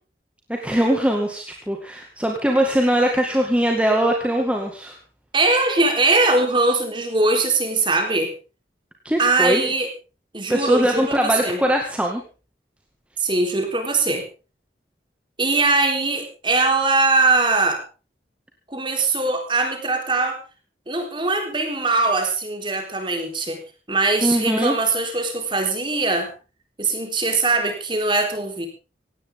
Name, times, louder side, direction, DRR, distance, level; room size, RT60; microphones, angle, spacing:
voice 1, 0.5-5.0 9.0-9.6 10.5-12.2 24.2-24.8, equal, 5° right, 1 dB, 2.1 m, -21 dB
voice 2, 5.3-8.3 9.2-9.9 10.3-11.6 13.2-14.2 15.4-17.8 18.7-20.4 20.9-23.6 23.9-26.3 26.8-28.7, right 3 dB, 25° right, 4 dB, 4.0 m, -21 dB
18.0 x 17.0 x 3.8 m, 0.35 s
head